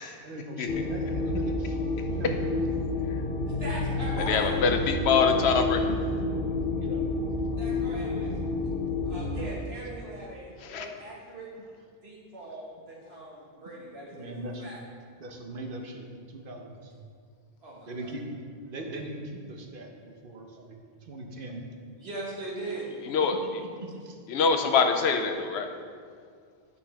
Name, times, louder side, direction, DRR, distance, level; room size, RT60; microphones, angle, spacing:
voice 1, 0.2-2.6 6.8-7.2 8.1-8.2 14.1-14.6 15.2-16.9 17.9-18.4 18.7-20.7 21.0-21.6 23.6-24.2, right 1 dB, 60° right, 2 dB, 1.0 m, -40 dB
sound 1, 0.7-9.4, left 2 dB, 60° left, 0.8 m, -29 dB
voice 2, 3.5-4.7 5.0-5.7 7.6-8.3 9.0-11.5 12.0-14.3 14.6-14.8 17.6-18.1 21.9-22.9, right 1 dB, 75° right, -5 dB, 1.8 m, -40 dB
voice 3, 4.3-6.0 10.7-10.8 23.1-23.4 24.3-25.7, left 5 dB, 85° left, 6 dB, 0.9 m, -24 dB
8.7 x 5.5 x 3.4 m, 2.1 s
omnidirectional pair, 1.1 m